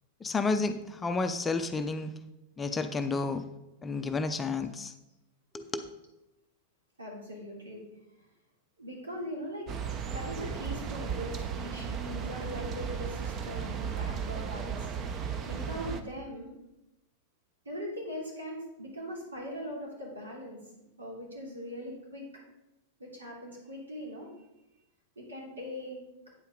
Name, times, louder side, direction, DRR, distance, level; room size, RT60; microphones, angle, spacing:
voice 1, 0.2-2.1 2.6-3.5 3.8-4.9 5.5-5.9, left 3 dB, 15° left, 8 dB, 0.5 m, -31 dB
voice 2, 7.0-7.8 8.2-8.3 8.8-9.7 10.1-14.9 15.5-16.5 17.6-20.6 21.0-22.3 23.0-24.3 25.1-26.0, equal, 75° right, -3 dB, 3.1 m, -40 dB
sound 1, 9.7-16.0, right 7 dB, 30° right, 0.8 m, -35 dB
8.9 x 8.1 x 3.8 m, 0.94 s
figure-of-eight pair, 90°, 0 cm